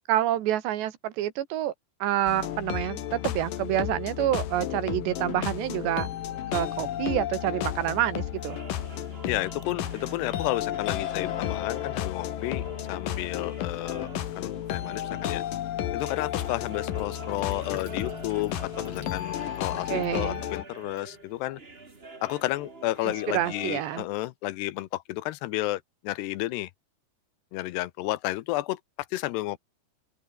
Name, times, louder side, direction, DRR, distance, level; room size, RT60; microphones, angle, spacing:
voice 1, 0.1-1.7 2.0-6.1 6.5-8.6 19.9-20.4 23.0-24.1, right 13 dB, 90° right, 3.9 m, -28 dB
sound 1, 2.3-20.6, left 11 dB, 60° left, 2.9 m, -33 dB
sound 2, 5.1-24.0, right 3 dB, 20° right, 1.8 m, -47 dB
voice 2, 9.2-14.1 14.4-15.4 15.9-21.6 22.2-26.7 27.5-28.8 29.1-29.6, left 17 dB, 85° left, 3.0 m, -32 dB
Sink (filling or washing), 16.8-21.5, left 5 dB, 40° left, 4.5 m, -51 dB
open air
omnidirectional pair, 4.8 m